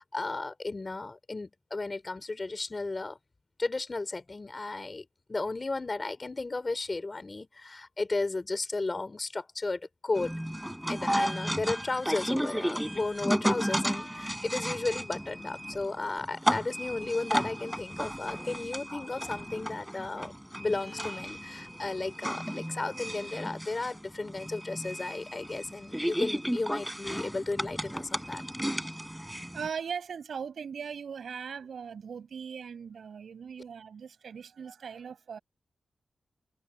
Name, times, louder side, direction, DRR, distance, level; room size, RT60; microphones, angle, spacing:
voice 1, 0.0-3.2 3.6-10.3 10.9-20.3 20.6-28.4, left 3 dB, 35° left, 3.3 m, -34 dB
sound 1, 10.2-29.7, equal, 5° right, 7.0 m, -34 dB
voice 2, 29.5-35.4, right 6 dB, 85° right, 6.5 m, -39 dB
wide cardioid pair, 90°, 0 cm